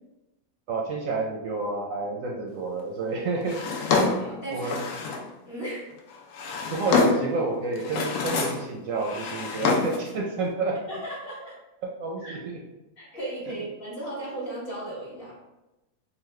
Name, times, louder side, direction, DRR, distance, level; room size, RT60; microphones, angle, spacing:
voice 1, 0.7-3.6 4.5-4.8 6.7-10.9 11.8-12.6 13.5-13.6, right 3 dB, 70° right, -1 dB, 0.8 m, -29 dB
Drawer open or close, 3.5-5.3 6.1-7.4 7.8-8.7 9.0-10.1, left 4 dB, 75° left, 1.0 m, -26 dB
voice 2, 3.9-4.7 5.4-5.9 10.9-11.6 12.2-12.4 13.0-15.3, right 1 dB, 40° left, -7 dB, 1.3 m, -36 dB
4.0 x 2.4 x 3.1 m, 0.96 s
omnidirectional pair, 1.6 m